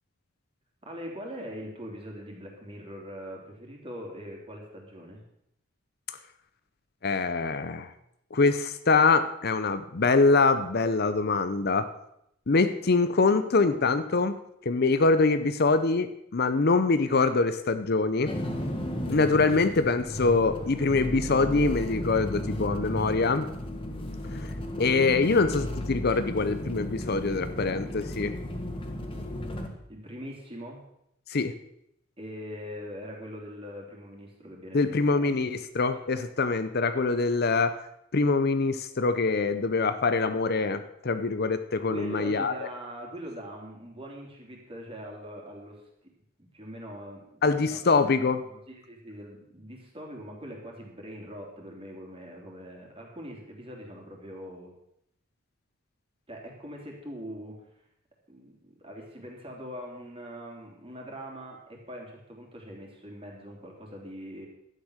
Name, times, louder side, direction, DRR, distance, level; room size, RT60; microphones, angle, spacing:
voice 1, 0.8-5.2 29.9-30.8 32.2-35.3 41.9-45.8 46.4-47.3 47.6-47.7 48.0-54.7 56.3-57.6 58.3-64.5, equal, 25° right, 0 dB, 3.2 m, -42 dB
voice 2, 7.0-7.9 8.3-11.9 12.5-14.4 14.6-18.3 19.1-23.5 24.4-24.5 24.8-28.3 31.3-31.5 34.7-37.7 38.1-42.5 47.4-48.4, left 3 dB, 50° left, 11 dB, 0.7 m, -24 dB
sound 1, 18.3-29.7, left 1 dB, 25° left, 1.6 m, -34 dB
12.0 x 9.2 x 6.5 m, 0.77 s
head